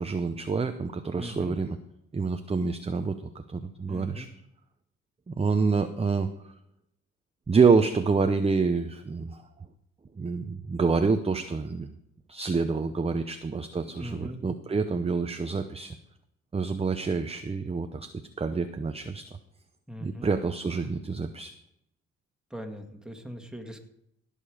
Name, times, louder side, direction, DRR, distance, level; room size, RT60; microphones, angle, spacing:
voice 1, 0.0-1.8 2.1-4.3 5.3-6.5 7.5-9.4 10.2-11.9 12.3-16.0 16.5-18.1 18.4-19.2 20.0-21.5, right 4 dB, 20° right, 8 dB, 0.7 m, -27 dB
voice 2, 1.1-1.6 3.9-4.3 13.8-14.4 19.9-20.3 22.5-23.8, equal, ahead, 4 dB, 1.9 m, -40 dB
16.5 x 6.8 x 4.9 m, 0.79 s
cardioid pair, 90°, 30 cm